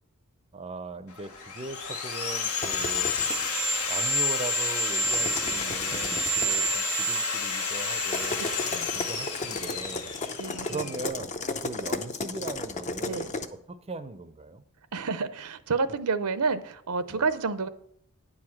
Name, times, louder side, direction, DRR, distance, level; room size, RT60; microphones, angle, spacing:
voice 1, 0.5-3.1 3.9-8.5 8.9-10.1 10.7-11.3 11.6-13.3 13.7-14.6 17.1-17.3, right 3 dB, 25° right, 11 dB, 0.5 m, -39 dB
Sawing, 1.2-11.0, left 2 dB, 80° left, 1.4 m, -29 dB
sound 1, 2.6-3.5 5.0-6.7 8.0-13.5, left 3 dB, 35° left, 0.6 m, -34 dB
voice 2, 10.4-10.9 13.0-13.3 14.9-17.7, right 4 dB, 90° right, 12 dB, 0.7 m, -29 dB
10.0 x 4.9 x 7.3 m, 0.70 s
head